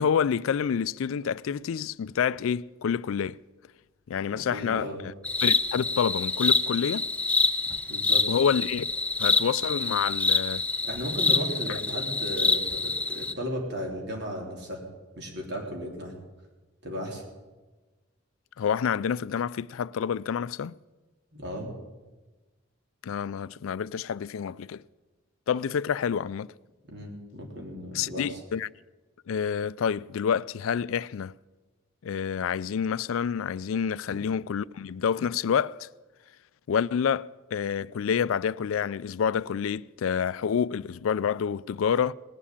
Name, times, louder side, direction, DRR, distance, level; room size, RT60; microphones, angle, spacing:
voice 1, 0.0-3.4 4.1-5.1 5.4-7.1 8.3-8.8 9.2-10.6 11.7-11.8 18.6-20.7 23.0-24.8 25.5-26.5 27.9-28.7 29.3-31.3 32.0-35.9 36.7-42.1, left 7 dB, 75° left, 0.4 m, -28 dB
voice 2, 4.3-5.0 7.9-8.2 10.8-14.8 15.2-16.1 16.8-17.2 21.3-21.7 26.9-28.4 34.1-34.2, equal, 55° right, 3.5 m, -35 dB
sound 1, 5.3-13.3, left 3 dB, 5° left, 0.5 m, -26 dB
19.0 x 7.3 x 8.5 m
head